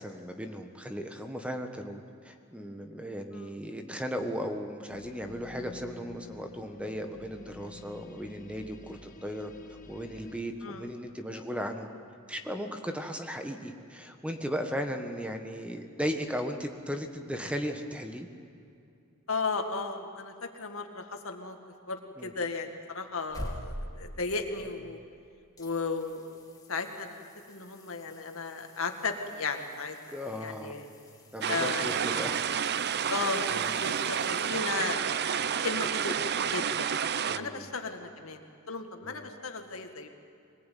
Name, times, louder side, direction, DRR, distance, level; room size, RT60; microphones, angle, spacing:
voice 1, 0.0-9.5 9.9-11.9 12.3-18.3 22.2-22.3 30.1-30.8 31.3-32.4 32.9-33.1 33.5-33.7 37.3-37.7 39.0-39.3, equal, 5° right, 5 dB, 1.5 m, -36 dB
sound 1, 4.9-10.4, left 2 dB, 40° left, 1.9 m, -49 dB
voice 2, 19.3-21.6 21.9-25.0 25.6-26.3 26.7-30.9 31.5-32.4 33.1-36.9 37.3-40.1, left 4 dB, 75° left, 5 dB, 2.1 m, -35 dB
sound 2, 23.0-25.2 25.6-35.2 37.9-38.0, equal, 20° left, 2.4 m, -47 dB
sound 3, 31.4-37.4, right 8 dB, 50° right, 0.6 m, -30 dB
23.0 x 20.0 x 9.4 m, 2.5 s
head